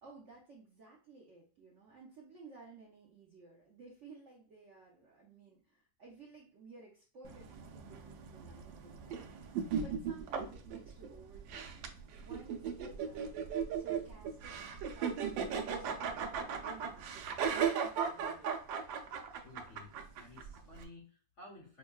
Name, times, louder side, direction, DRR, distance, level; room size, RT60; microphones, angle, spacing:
voice 1, 0.0-9.3 9.8-13.3 13.8-18.6, right 3 dB, 65° right, -3 dB, 0.7 m, -57 dB
sound 1, 7.2-20.8, right 7 dB, 80° right, 1.3 m, -37 dB
voice 2, 19.4-21.8, left 2 dB, 55° left, -2 dB, 0.9 m, -54 dB
5.3 x 2.2 x 2.3 m, 0.39 s
omnidirectional pair, 2.1 m